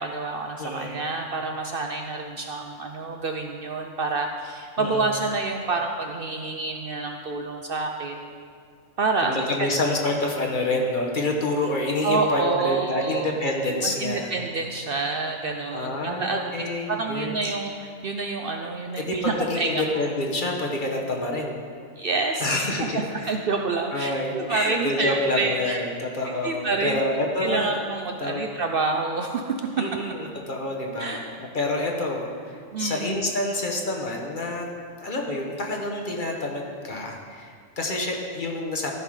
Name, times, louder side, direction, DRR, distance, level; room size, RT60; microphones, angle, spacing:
voice 1, 0.0-8.4 9.0-9.7 12.0-13.3 13.8-19.8 22.0-22.5 22.9-25.8 26.2-27.0 27.4-29.4 31.0-31.3 32.7-33.2, right 3 dB, 55° right, 3 dB, 0.7 m, -28 dB
voice 2, 0.6-1.0 4.8-5.1 9.2-14.3 15.7-17.5 19.0-21.6 22.4-23.3 23.9-27.8 28.2-28.4 29.8-34.7 35.0-38.9, left 2 dB, 40° left, 1 dB, 1.1 m, -28 dB
13.5 x 5.9 x 4.9 m, 2.1 s
omnidirectional pair, 1.3 m